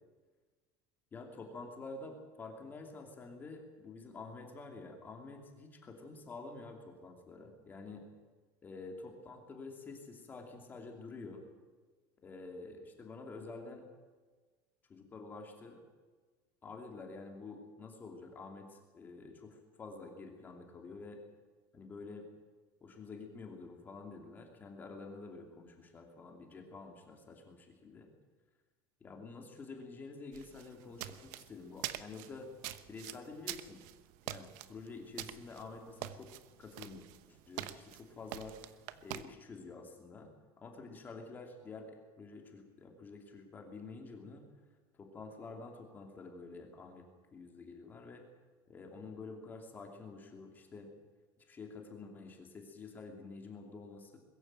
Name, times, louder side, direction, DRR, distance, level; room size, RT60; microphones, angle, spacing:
voice 1, 1.1-8.1 8.6-11.4 12.2-13.9 14.9-15.8 16.6-21.2 21.7-22.3 22.8-28.1 29.0-32.5 32.9-33.8 34.2-36.3 36.6-37.0 37.3-38.7 39.0-44.4 44.9-47.0 47.3-48.2 48.7-50.9 51.5-54.2, left 3 dB, 20° left, 3 dB, 2.8 m, -49 dB
sound 1, 30.3-39.2, right 14 dB, 65° right, 1.1 m, -45 dB
21.5 x 14.5 x 8.9 m, 1.4 s
cardioid pair, 180°, 10 cm